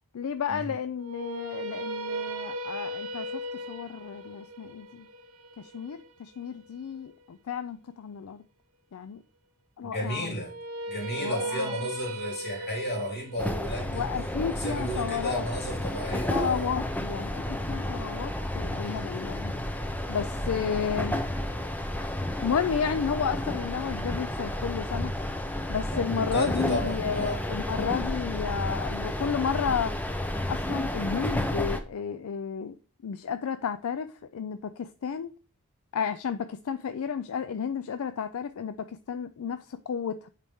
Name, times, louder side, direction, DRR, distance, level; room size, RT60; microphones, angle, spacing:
voice 1, 0.1-3.4 3.7-5.1 5.6-8.4 8.9-9.2 9.8-10.3 11.2-11.8 13.9-15.5 16.1-19.5 20.1-21.2 22.4-25.1 25.7-29.9 30.3-32.8 33.0-35.3 35.9-40.3, left 7 dB, 70° left, 0.4 m, -32 dB
sound 1, 1.0-7.1 10.4-16.4, right 2 dB, 70° right, 0.8 m, -38 dB
voice 2, 9.8-10.5 10.9-14.0 14.5-16.7 18.7-19.1 25.9-27.4, equal, 45° left, 3.3 m, -33 dB
sound 2, 13.4-31.8, left 1 dB, 5° left, 0.6 m, -31 dB
9.2 x 4.1 x 3.6 m
head